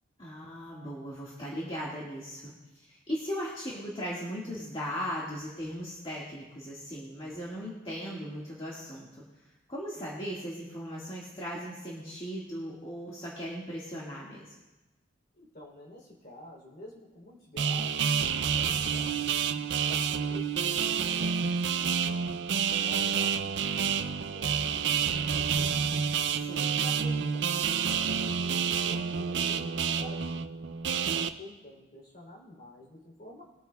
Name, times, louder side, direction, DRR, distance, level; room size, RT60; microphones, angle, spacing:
voice 1, 0.2-2.5 2.9-9.1 9.7-14.5 26.4-26.7, equal, 30° left, -7 dB, 1.8 m, -38 dB
voice 2, 15.4-19.5 19.9-22.2 22.5-24.1 24.3-26.1 26.6-30.4 30.8-33.4, left 1 dB, 45° left, -1 dB, 3.3 m, -50 dB
sound 1, 17.6-31.3, right 7 dB, 65° right, 0.5 m, -29 dB
21.5 x 9.0 x 2.3 m, 1.1 s
head